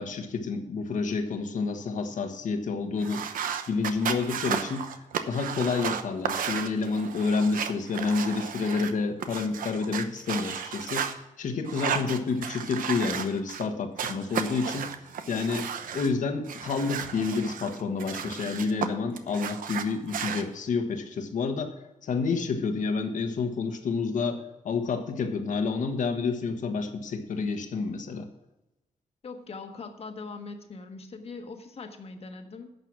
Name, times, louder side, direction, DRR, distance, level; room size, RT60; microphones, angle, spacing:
voice 1, 0.0-3.2 3.7-4.9 5.3-11.1 11.4-14.9 15.3-21.7 22.0-28.3, left 4 dB, 65° left, 6 dB, 1.5 m, -29 dB
sound 1, 3.0-11.1 11.6-13.7 14.0-16.1 16.5-18.9 19.2-20.4, right 8 dB, 85° right, 0.9 m, -33 dB
voice 2, 29.2-32.7, left 4 dB, 45° left, 6 dB, 1.4 m, -41 dB
11.0 x 6.8 x 6.1 m, 0.95 s
cardioid pair, 120°, 14 cm